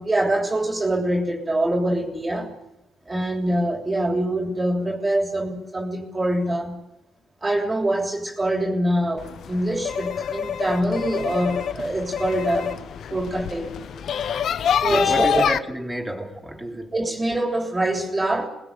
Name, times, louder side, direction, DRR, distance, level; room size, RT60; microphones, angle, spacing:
voice 1, 0.0-2.5 3.1-6.8 7.4-12.8 13.1-13.7 14.8-15.4 16.9-18.5, right 1 dB, 20° right, 3.4 m, -24 dB
sound 1, 9.2-15.6, left 8 dB, 65° left, 0.9 m, -26 dB
voice 2, 14.9-16.9, right 1 dB, 5° right, 3.7 m, -30 dB
23.0 x 20.0 x 8.9 m
cardioid pair, 90°, 0 cm